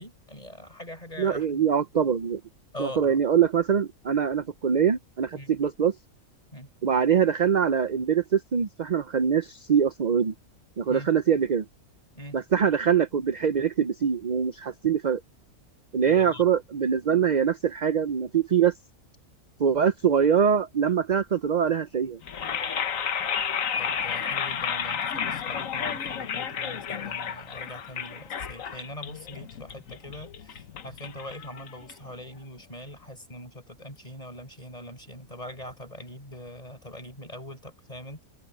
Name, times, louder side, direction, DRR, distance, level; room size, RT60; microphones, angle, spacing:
voice 1, 0.0-1.6 2.7-3.2 5.3-5.5 6.5-6.7 10.9-11.1 12.1-12.4 16.1-16.5 23.8-38.2, left 1 dB, 25° left, 6.6 m, -42 dB
voice 2, 1.2-2.4 2.8-5.9 6.8-10.3 10.8-11.6 12.3-15.2 15.9-18.7 19.6-22.2, right 7 dB, 50° right, 0.5 m, -23 dB
sound 1, 22.2-32.3, left 7 dB, 65° left, 1.5 m, -32 dB
omnidirectional pair, 1.6 m